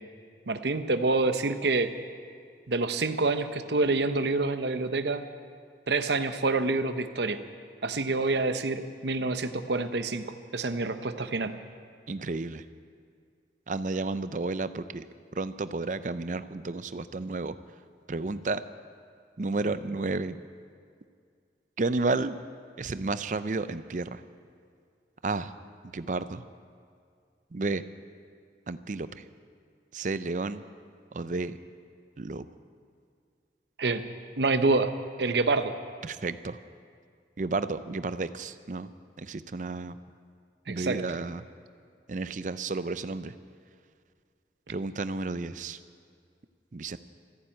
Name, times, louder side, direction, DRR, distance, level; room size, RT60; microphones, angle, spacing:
voice 1, 0.5-1.9 2.7-5.2 5.9-7.4 7.8-10.2 10.5-11.5 33.8-34.0 34.4-34.9 35.2-35.7 40.7-41.0, right 3 dB, 80° right, 9 dB, 0.9 m, -27 dB
voice 2, 12.1-12.6 13.7-15.1 15.3-17.5 18.1-18.6 19.4-20.4 21.8-22.4 22.8-24.2 25.2-25.5 25.9-26.4 27.5-27.8 28.7-29.2 29.9-30.6 31.1-31.6 32.2-32.5 36.0-36.6 37.4-38.9 39.2-40.0 40.7-41.4 42.1-43.3 44.7-45.8 46.7-47.0, right 3 dB, 45° right, 13 dB, 0.5 m, -32 dB
14.5 x 11.5 x 8.7 m, 2.2 s
head